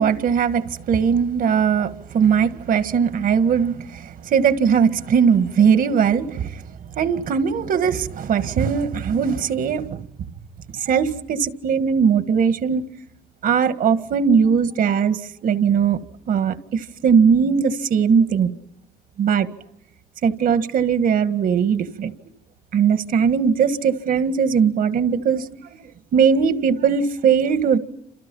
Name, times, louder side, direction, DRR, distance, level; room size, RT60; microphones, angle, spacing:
voice 1, 0.0-6.6 7.0-10.0 10.7-12.9 13.4-16.0 16.3-18.5 19.2-19.5 20.2-22.1 22.7-25.6 26.1-27.8, right 6 dB, 55° right, 1.9 m, -19 dB
29.5 x 28.0 x 5.6 m
cardioid pair, 110°, 17 cm